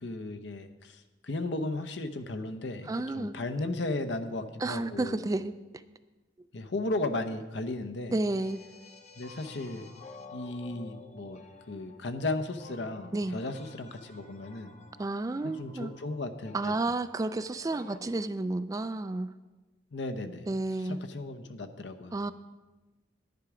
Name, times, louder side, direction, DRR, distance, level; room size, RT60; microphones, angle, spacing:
voice 1, 0.0-5.2 6.5-8.2 9.2-9.9 10.3-14.7 15.4-16.7 19.9-20.5 20.8-22.1, left 2 dB, 70° left, 9 dB, 0.8 m, -35 dB
voice 2, 2.9-3.3 4.6-5.5 8.1-8.6 13.1-13.4 15.0-15.9 16.5-19.3 20.5-21.0 22.1-22.3, right 2 dB, 20° right, 12 dB, 0.3 m, -31 dB
sound 1, 8.3-18.0, left 3 dB, 40° left, 0.8 m, -51 dB
10.5 x 10.5 x 4.9 m, 1.2 s
head